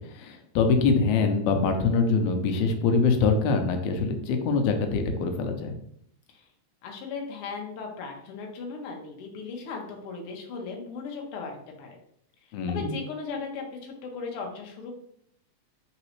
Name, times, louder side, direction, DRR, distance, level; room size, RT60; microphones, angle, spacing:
voice 1, 0.0-5.7 12.5-12.9, left 4 dB, 90° left, 6 dB, 2.0 m, -24 dB
voice 2, 6.8-12.0 12.7-14.9, left 4 dB, 65° left, 1 dB, 1.5 m, -37 dB
4.0 x 3.8 x 3.0 m, 0.69 s
omnidirectional pair, 3.3 m